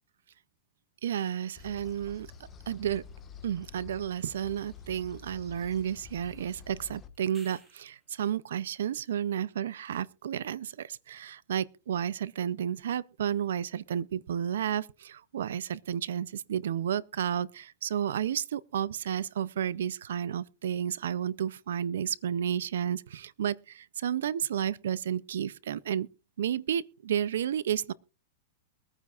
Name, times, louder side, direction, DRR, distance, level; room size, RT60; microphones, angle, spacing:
voice 1, 1.0-2.3 2.7-3.0 3.4-26.1 26.4-27.9, right 9 dB, 85° right, 0.5 m, -32 dB
sound 1, 1.6-7.1, left 6 dB, 20° left, 1.3 m, -49 dB
sound 2, 7.1-8.1 12.8-12.9, right 2 dB, 15° right, 2.7 m, -56 dB
23.0 x 9.6 x 2.4 m
supercardioid pair, 145°, 0 cm